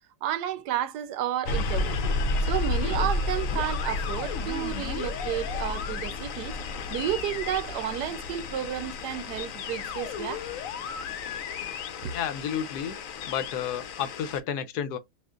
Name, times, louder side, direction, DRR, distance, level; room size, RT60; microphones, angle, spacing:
voice 1, 0.2-6.6 6.9-10.4 12.0-12.1, right 11 dB, 85° right, 1.2 m, -32 dB
sound 1, 1.5-14.4, left 3 dB, 65° left, 1.0 m, -32 dB
voice 2, 12.1-13.0 13.3-15.0, left 8 dB, 85° left, 1.2 m, -31 dB
5.8 x 2.5 x 2.4 m
omnidirectional pair, 1.7 m